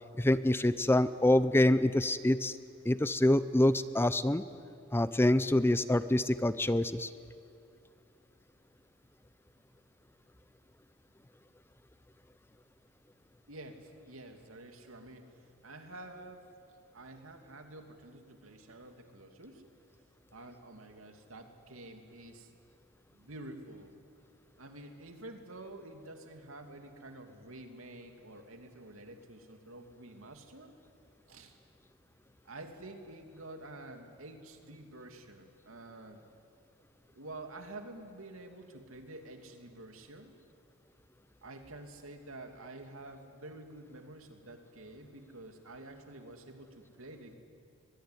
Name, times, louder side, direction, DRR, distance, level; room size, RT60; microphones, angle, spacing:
voice 1, 0.2-2.6 2.9-4.4 4.9-7.1, left 1 dB, 10° left, 14 dB, 0.6 m, -26 dB
voice 2, 13.5-15.3 15.6-16.5 16.9-19.6 20.3-22.5 23.1-23.9 24.6-30.7 31.3-31.6 32.4-36.2 37.1-40.3 41.4-47.4, right 2 dB, 85° right, 5 dB, 2.7 m, -49 dB
22.5 x 22.0 x 9.8 m, 2.5 s
head